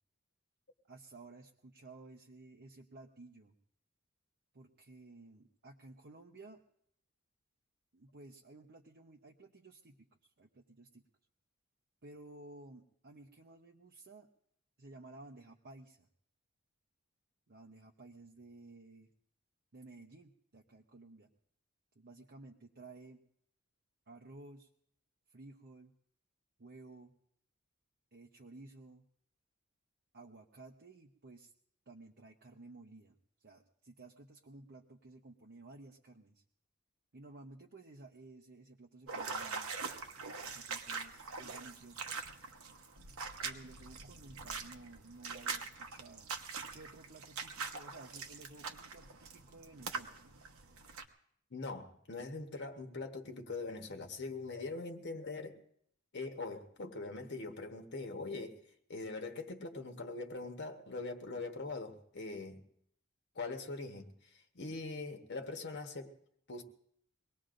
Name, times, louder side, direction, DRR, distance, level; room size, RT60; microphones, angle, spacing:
voice 1, 0.9-3.6 4.5-6.6 7.9-9.9 10.2-11.1 12.0-14.3 14.8-16.1 17.5-19.1 19.7-21.3 21.9-23.2 24.1-24.7 25.3-25.9 26.6-27.1 28.1-29.0 30.1-31.5 31.9-36.4 37.1-39.9 40.3-42.0 43.4-46.4 46.7-50.3, right 2 dB, 50° right, 2 dB, 0.8 m, -55 dB
sound 1, 39.1-51.0, right 5 dB, 75° right, 1.1 m, -43 dB
voice 2, 51.5-55.6 56.1-58.6 58.9-62.6 63.3-66.1 66.5-66.6, left 3 dB, 55° left, 4 dB, 1.2 m, -42 dB
23.5 x 19.0 x 2.6 m, 0.69 s
head